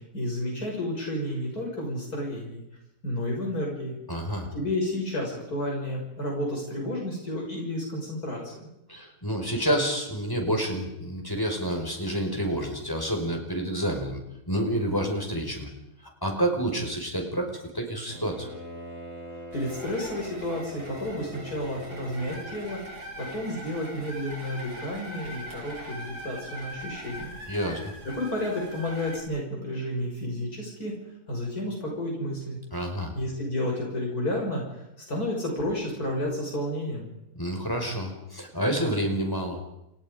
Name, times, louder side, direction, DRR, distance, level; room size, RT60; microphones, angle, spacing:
voice 1, 0.1-2.6 3.0-3.9 4.5-8.7 19.5-27.3 28.2-31.0 31.3-32.6 33.1-37.1, left 1 dB, 70° left, -1 dB, 6.6 m, -31 dB
voice 2, 4.1-4.5 8.9-14.2 14.5-15.7 16.0-18.5 27.5-27.8 32.7-33.1 37.3-39.6, right 1 dB, 15° left, 2 dB, 5.3 m, -28 dB
Bowed string instrument, 18.1-22.9, equal, 40° left, 7.9 m, -43 dB
sound 1, 19.5-29.2, equal, 80° right, 6.3 m, -41 dB
29.5 x 29.0 x 5.2 m, 0.86 s
omnidirectional pair, 1.7 m